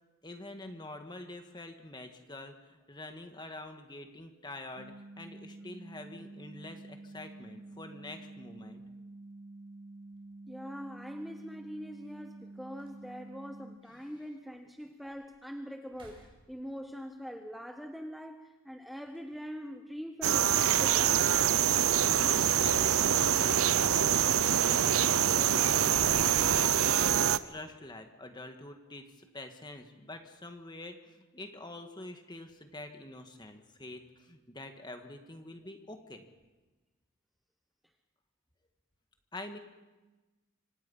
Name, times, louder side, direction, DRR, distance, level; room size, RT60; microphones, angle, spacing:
voice 1, 0.2-8.8 13.9-14.1 21.9-22.3 22.6-36.3 39.3-39.6, left 2 dB, 20° left, 6 dB, 1.8 m, -46 dB
sound 1, 4.8-13.8, right 2 dB, 85° right, 1.3 m, -49 dB
sound 2, 10.1-10.2 11.9-12.0 12.4-12.5 12.8-13.3 13.9-14.0 14.6-14.7 15.1-15.4 15.8-16.9 19.0-19.7 22.4-23.5 23.9-24.1 25.4-26.7, equal, 25° right, 5.7 m, -52 dB
voice 2, 10.5-21.2, equal, ahead, 5 dB, 0.8 m, -43 dB
sound 3, 20.2-27.4, right 9 dB, 70° right, 0.7 m, -25 dB
26.0 x 26.0 x 5.6 m, 1.2 s
head